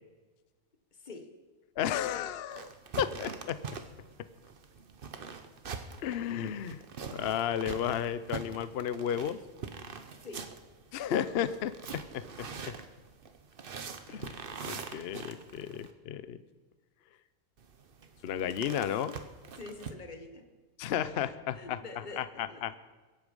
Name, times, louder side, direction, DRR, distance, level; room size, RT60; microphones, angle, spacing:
voice 1, 1.8-2.7 3.0-3.6 6.0-6.8 7.1-9.4 10.9-12.7 14.1-14.4 14.6-16.4 18.2-19.2 20.8-21.8 22.2-22.8, left 9 dB, 75° left, 14 dB, 0.5 m, -33 dB
sound 1, 2.5-15.9 17.6-19.9, right 5 dB, 45° right, 0.7 m, -44 dB
voice 2, 19.6-20.5 21.2-22.6, left 3 dB, 30° left, 7 dB, 1.1 m, -46 dB
22.5 x 8.3 x 5.4 m, 1.3 s
omnidirectional pair, 1.9 m